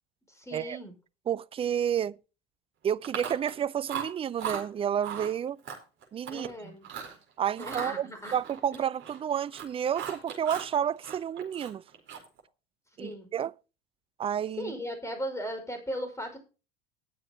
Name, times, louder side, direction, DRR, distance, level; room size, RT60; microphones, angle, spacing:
voice 1, 0.4-0.9 6.3-6.9 7.6-8.3 8.7-8.8 13.0-13.3 14.6-16.4, equal, 10° left, 5.4 m, -37 dB
voice 2, 1.3-2.2 2.8-5.6 6.1-6.8 7.4-11.8 13.0-13.5 14.2-14.7, right 9 dB, 20° right, 0.4 m, -30 dB
Chewing mastication, 3.0-3.6 3.9-4.6 5.0-5.3 5.7-6.5 6.8-7.2 7.6-9.2 9.5-10.7 11.0-12.4, right 8 dB, 40° right, 4.3 m, -38 dB
20.0 x 7.0 x 2.9 m
figure-of-eight pair, 75°, 30 cm